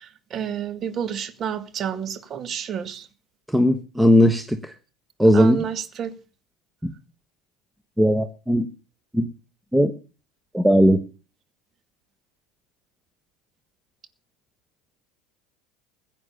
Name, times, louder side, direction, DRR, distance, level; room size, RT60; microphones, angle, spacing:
voice 1, 0.0-3.1 5.3-6.1, right 8 dB, 40° right, 2.2 m, -30 dB
voice 2, 3.5-4.7 5.2-5.6 6.8-6.9 8.0-8.7 9.1-9.3 9.7-9.9 10.5-11.0, equal, 5° right, 1.3 m, -18 dB
16.0 x 9.1 x 7.0 m
hypercardioid pair, 80°, 0 cm